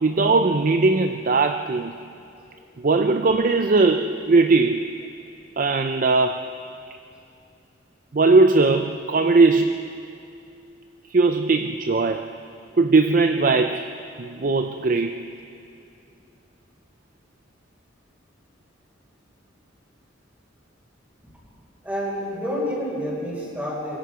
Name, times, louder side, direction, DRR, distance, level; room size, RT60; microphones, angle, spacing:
voice 1, 0.0-1.9 2.8-4.9 5.6-6.5 8.1-9.9 11.1-12.3 12.8-13.9 14.2-15.2, right 3 dB, 45° right, 8 dB, 0.5 m, -19 dB
voice 2, 21.8-24.0, equal, 10° right, -7 dB, 5.7 m, -28 dB
24.5 x 22.5 x 4.9 m, 2.6 s
head